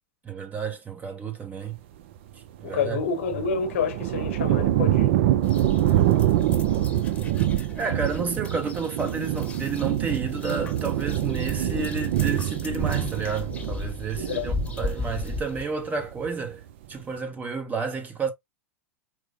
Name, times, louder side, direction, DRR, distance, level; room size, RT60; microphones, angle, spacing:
voice 1, 0.2-1.8 2.6-3.0 7.8-16.6 16.9-18.3, right 5 dB, 20° right, 0.8 m, -31 dB
voice 2, 2.6-5.2 14.2-14.5, left 6 dB, 70° left, 0.9 m, -28 dB
sound 1, 2.7-15.5 15.9-16.5, right 12 dB, 60° right, 0.4 m, -25 dB
sound 2, 5.4-15.6, left 3 dB, 15° left, 1.0 m, -37 dB
4.6 x 2.1 x 2.6 m
hypercardioid pair, 95°, 7 cm